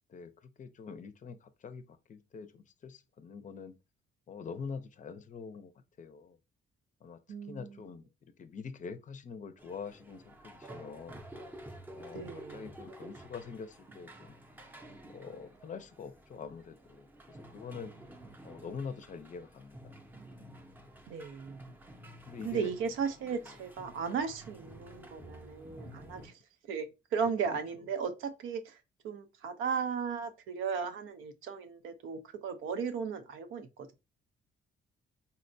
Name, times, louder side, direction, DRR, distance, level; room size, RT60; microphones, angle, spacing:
voice 1, 0.1-3.8 4.3-5.7 6.0-6.4 7.0-7.2 7.5-8.0 8.4-11.2 12.0-14.3 15.1-18.0 18.4-19.8 22.3-22.7 23.3-23.4 27.5-27.6, left 5 dB, 40° left, 0.5 m, -45 dB
voice 2, 7.3-7.8 12.1-12.7 21.1-21.7 22.4-26.3 26.7-28.8 29.0-33.9, right 6 dB, 85° right, 0.6 m, -36 dB
sound 1, 9.6-26.3, right 1 dB, 10° right, 0.6 m, -51 dB
4.0 x 2.1 x 2.6 m
cardioid pair, 90°, 20 cm